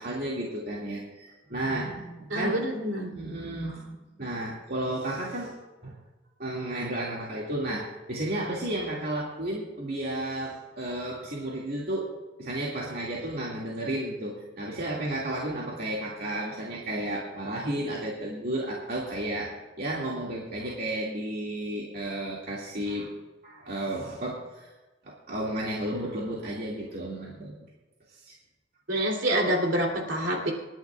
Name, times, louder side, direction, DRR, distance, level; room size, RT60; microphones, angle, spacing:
voice 1, 0.0-2.6 3.1-5.5 5.8-5.9 6.4-12.1 12.4-23.1 23.4-24.7 25.0-27.6 28.1-28.4, right 1 dB, 55° right, -4 dB, 2.3 m, -33 dB
voice 2, 2.3-3.1 28.9-30.5, right 1 dB, 70° right, 0 dB, 3.3 m, -26 dB
28.5 x 10.5 x 2.5 m, 1.2 s
head